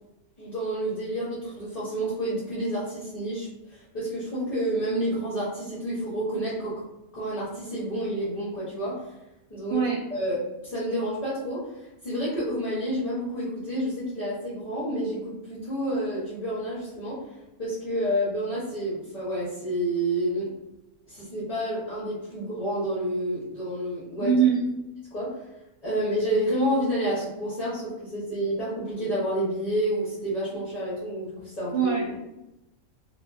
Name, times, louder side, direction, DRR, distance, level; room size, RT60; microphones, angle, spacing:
voice 1, 0.4-6.7 7.1-9.0 9.5-9.8 10.1-10.4 10.6-17.2 17.6-20.5 21.1-24.4 25.1-25.4 25.8-31.9, right 1 dB, 35° left, -9 dB, 0.7 m, -29 dB
voice 2, 24.2-24.7 31.7-32.2, right 7 dB, 65° right, -5 dB, 0.8 m, -23 dB
2.5 x 2.4 x 2.3 m, 0.93 s
omnidirectional pair, 1.4 m